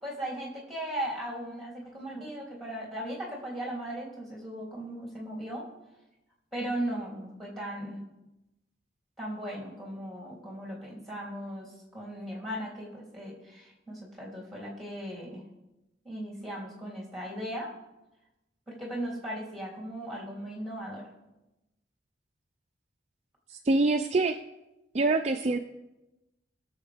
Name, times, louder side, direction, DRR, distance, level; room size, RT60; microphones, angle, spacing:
voice 1, 0.0-5.6 6.5-8.0 9.2-15.4 16.0-17.7 18.7-21.0, right 1 dB, ahead, -4 dB, 3.0 m, -37 dB
voice 2, 23.5-24.4 24.9-25.6, right 3 dB, 35° right, 5 dB, 0.4 m, -25 dB
20.0 x 7.1 x 3.5 m, 0.97 s
head